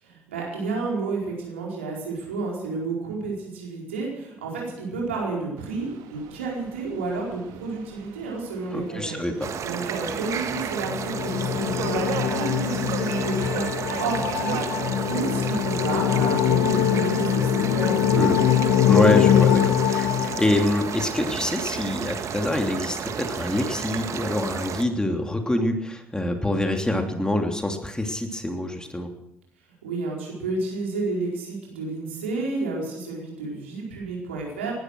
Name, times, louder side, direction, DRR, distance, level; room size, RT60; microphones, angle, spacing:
voice 1, 0.0-13.7 14.0-18.6 29.8-34.7, right 3 dB, 85° right, -2 dB, 4.6 m, -31 dB
Subway metro underground, 5.6-19.2, right 9 dB, 70° right, 1.9 m, -39 dB
voice 2, 8.7-9.3 18.2-18.3 18.9-29.1, left 1 dB, 10° left, 4 dB, 3.1 m, -26 dB
sound 1, 9.4-24.8, right 7 dB, 55° right, 1.6 m, -32 dB
sound 2, 10.3-21.0, left 10 dB, 65° left, 1.1 m, -23 dB
19.0 x 12.5 x 6.3 m, 0.89 s
hypercardioid pair, 50°, 6 cm